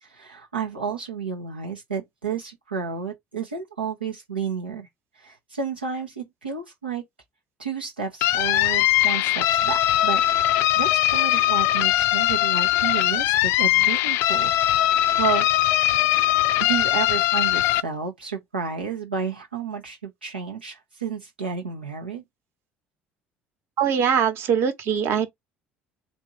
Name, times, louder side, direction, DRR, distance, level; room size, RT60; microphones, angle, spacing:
voice 1, 0.0-4.9 5.2-7.0 7.6-10.2 10.8-15.5 16.6-22.2, right 6 dB, 85° right, 0.8 m, -31 dB
sound 1, 8.2-17.8, left 14 dB, 55° left, 0.4 m, -21 dB
voice 2, 23.8-25.3, right 7 dB, 50° right, 1.1 m, -22 dB
3.5 x 2.7 x 4.2 m
figure-of-eight pair, 60°, 5 cm